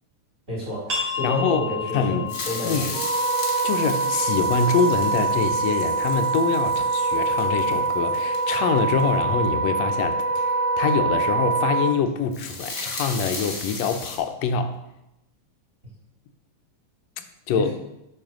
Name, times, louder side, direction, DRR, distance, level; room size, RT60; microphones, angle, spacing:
voice 1, 0.5-3.0 17.6-17.7, left 1 dB, 25° right, -8 dB, 3.9 m, -30 dB
sound 1, 0.9-6.3, left 5 dB, 40° right, 2.4 m, -34 dB
voice 2, 1.2-1.7 1.9-2.3 2.6-2.9 3.6-10.5 10.8-14.8 17.5-17.7, left 5 dB, 75° left, 7 dB, 1.7 m, -24 dB
sound 2, 2.3-9.0 12.1-14.2, left 2 dB, 35° left, 1.7 m, -35 dB
Wind instrument woodwind instrument, 2.9-11.9, right 3 dB, 85° right, 2.8 m, -24 dB
7.6 x 4.8 x 6.1 m, 0.88 s
omnidirectional pair, 3.4 m